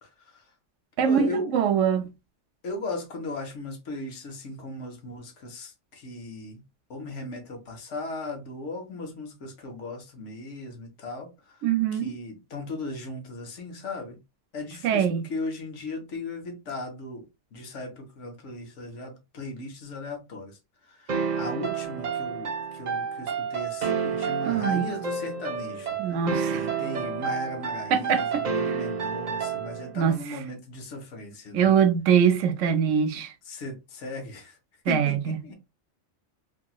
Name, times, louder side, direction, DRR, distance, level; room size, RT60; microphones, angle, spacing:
voice 1, 0.0-0.5 1.0-1.6 2.6-6.6 6.9-11.6 11.9-14.2 14.5-26.2 26.5-31.8 33.5-34.6 34.9-35.6, left 2 dB, 70° left, 1.1 m, -37 dB
voice 2, 1.0-2.1 11.6-12.1 14.8-15.2 24.5-24.8 26.0-26.6 27.9-28.4 29.9-30.2 31.5-33.3 34.9-35.4, right 8 dB, 80° right, 0.9 m, -23 dB
sound 1, 21.1-30.0, right 6 dB, 50° right, 0.5 m, -30 dB
2.9 x 2.8 x 2.3 m
omnidirectional pair, 1.3 m